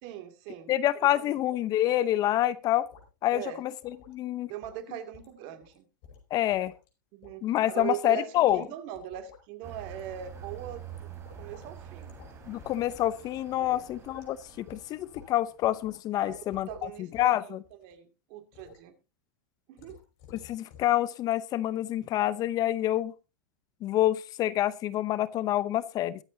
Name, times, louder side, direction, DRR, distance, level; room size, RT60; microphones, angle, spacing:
voice 1, 0.0-0.8 1.2-1.4 3.3-3.6 4.5-5.8 7.1-10.8 11.4-12.1 13.6-13.8 16.2-19.0 19.7-20.0, right 11 dB, 50° right, 8 dB, 2.5 m, -40 dB
voice 2, 0.7-2.9 3.2-3.7 4.1-4.5 6.3-6.7 7.4-8.6 12.5-17.6 20.4-23.1 23.8-26.2, left 13 dB, 35° left, 17 dB, 0.8 m, -27 dB
sound 1, 2.8-3.1 3.3-3.4 3.8-4.2 4.6-4.8 5.1-5.3 5.6-5.8 6.0-6.9 7.2-7.9 8.5-8.7 8.9-9.4 9.9-10.1 10.4-11.7 12.0-12.3 12.6-12.9 13.2-13.3 13.7-14.3 14.7-15.3 15.6-15.9 16.3-17.3 17.6-17.9 18.5-18.8 19.8-20.9 21.2-21.3, left 5 dB, 55° left, 5.1 m, -52 dB
sound 2, 9.6-15.7, right 8 dB, 25° right, 4.3 m, -47 dB
22.0 x 7.7 x 2.8 m, 0.29 s
hypercardioid pair, 120°, 11 cm